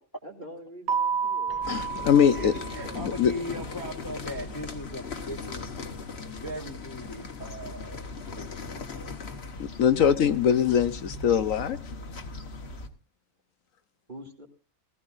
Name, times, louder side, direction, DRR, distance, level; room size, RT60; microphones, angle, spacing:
voice 1, 0.2-3.0 14.1-14.5, right 1 dB, 35° right, 2 dB, 2.9 m, -46 dB
Keyboard (musical), 0.9-3.4, right 6 dB, 75° right, 1.3 m, -31 dB
Keyboard (musical) 2, 1.5-4.2, equal, 10° right, 2.9 m, -48 dB
sound 1, 1.6-12.9, left 3 dB, 45° left, 1.5 m, -39 dB
voice 2, 1.7-2.5 2.9-3.3 9.6-11.8, left 8 dB, 70° left, 11 dB, 1.2 m, -22 dB
voice 3, 2.3-5.7 6.2-8.8, left 1 dB, 15° left, 4 dB, 1.3 m, -38 dB
19.5 x 15.0 x 2.5 m, 0.34 s
omnidirectional pair, 1.5 m